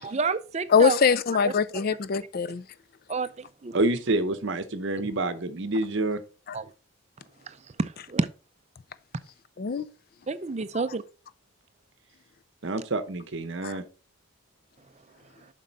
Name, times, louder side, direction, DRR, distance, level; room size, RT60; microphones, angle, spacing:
voice 1, 0.0-1.0 3.1-3.3 6.5-6.7 7.8-8.3 10.3-11.0, right 4 dB, 30° right, 0.5 m, -28 dB
voice 2, 0.7-2.6 6.5-6.6 9.6-9.9 10.7-10.8 13.6-13.8, left 6 dB, 45° left, 0.4 m, -23 dB
voice 3, 3.7-6.2 12.6-13.8, right 2 dB, 55° right, 0.8 m, -27 dB
7.5 x 5.4 x 4.1 m
head